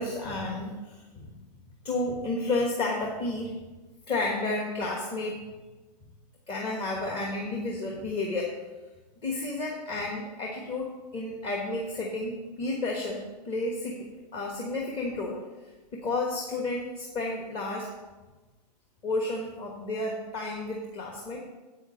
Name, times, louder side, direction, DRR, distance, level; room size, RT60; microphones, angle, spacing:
voice 1, 0.0-1.3 1.8-3.5 4.1-5.5 6.5-8.5 9.2-10.9 11.1-14.0 14.3-15.4 15.9-17.9 19.0-21.4, left 2 dB, 25° left, -1 dB, 1.3 m, -31 dB
8.3 x 6.4 x 6.5 m, 1.2 s
hypercardioid pair, 145°, 21 cm